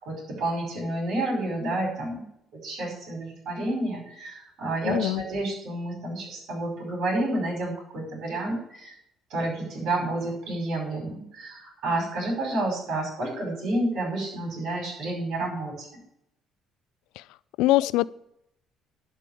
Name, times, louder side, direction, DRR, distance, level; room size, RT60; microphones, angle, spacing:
voice 1, 0.0-2.2 2.5-8.9 9.3-16.0, right 2 dB, 70° right, 1 dB, 5.4 m, -30 dB
voice 2, 4.8-5.2 17.6-18.1, left 17 dB, 85° left, 19 dB, 0.4 m, -22 dB
11.5 x 5.4 x 8.4 m, 0.78 s
cardioid pair, 100°, 0 cm